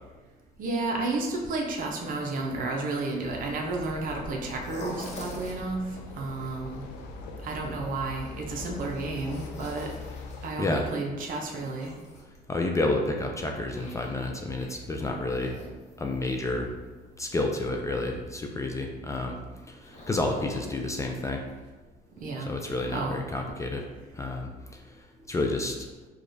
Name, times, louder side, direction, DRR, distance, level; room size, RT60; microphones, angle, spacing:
voice 1, 0.6-5.8 6.2-6.8 7.4-9.9 10.4-11.9 22.2-22.5 22.9-23.2, right 3 dB, 55° right, 1 dB, 0.7 m, -32 dB
sound 1, 3.2-10.5, left 3 dB, 85° left, 0.5 m, -42 dB
sound 2, 4.6-5.7 8.2-10.6 11.8-12.8 13.2-15.0 15.3-16.4 19.8-21.2 21.6-21.7 22.2-22.3, left 1 dB, 40° left, 0.9 m, -45 dB
voice 2, 12.5-15.7 16.0-16.7 17.2-19.4 19.7-21.4 22.5-23.9 24.1-24.5 25.3-25.8, left 2 dB, 20° left, 2 dB, 0.3 m, -30 dB
4.7 x 2.3 x 2.6 m, 1.2 s
cardioid pair, 110°, 17 cm